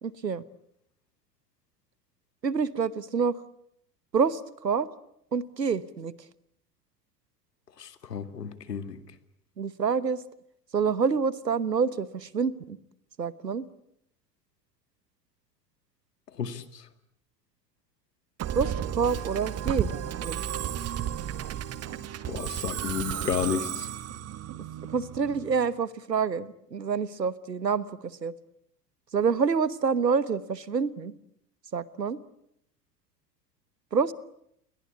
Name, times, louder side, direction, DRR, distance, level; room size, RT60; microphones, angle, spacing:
voice 1, 0.0-0.4 2.4-3.4 4.1-4.9 5.3-6.1 9.6-10.2 10.7-12.8 13.2-13.7 18.5-19.9 20.2-20.4 24.9-28.3 29.1-31.1 31.7-32.2 33.9-34.1, right 5 dB, 80° right, 19 dB, 1.3 m, -27 dB
voice 2, 7.8-9.0 16.4-16.9 22.3-23.9, left 7 dB, 75° left, 11 dB, 2.2 m, -32 dB
Musical instrument, 18.4-25.7, right 10 dB, 30° right, 1.7 m, -33 dB
29.0 x 23.0 x 8.3 m, 0.73 s
figure-of-eight pair, 75°, 49 cm